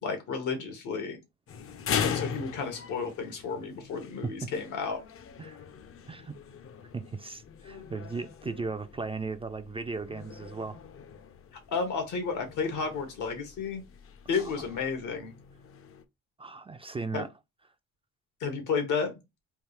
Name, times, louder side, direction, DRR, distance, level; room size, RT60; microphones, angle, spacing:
voice 1, 0.0-1.2 2.0-5.0 11.7-13.8 14.3-15.3 17.1-17.3 18.4-19.1, left 5 dB, 80° left, 1.2 m, -32 dB
sound 1, 1.5-16.0, left 7 dB, 45° left, 0.5 m, -40 dB
voice 2, 6.9-10.8 14.6-14.7 16.4-17.3, right 4 dB, 20° right, 0.3 m, -36 dB
3.4 x 2.4 x 3.1 m
cardioid pair, 90°, 30 cm